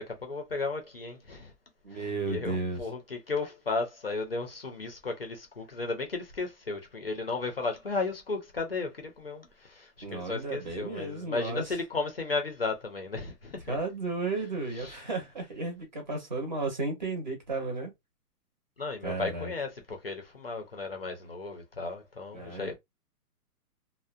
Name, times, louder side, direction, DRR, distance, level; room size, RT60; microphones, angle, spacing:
voice 1, 0.0-1.5 1.9-13.8 14.7-15.0 18.8-22.7, left 3 dB, 40° left, 0.4 m, -34 dB
voice 2, 1.8-2.8 10.0-11.6 13.7-17.9 19.0-19.5 22.3-22.7, right 3 dB, 30° right, 0.6 m, -33 dB
2.6 x 2.0 x 2.3 m
hypercardioid pair, 170°, 46 cm